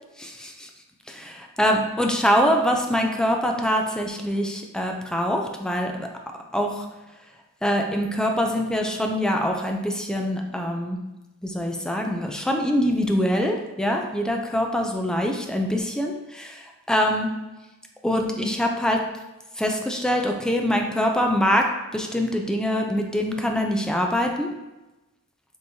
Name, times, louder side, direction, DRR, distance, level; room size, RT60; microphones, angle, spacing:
voice 1, 0.2-0.7 1.1-1.3 1.6-6.1 6.5-6.9 7.6-11.0 11.4-17.3 18.0-19.0 19.6-24.5, equal, 5° left, 2 dB, 0.4 m, -24 dB
5.5 x 3.1 x 2.7 m, 1.0 s
head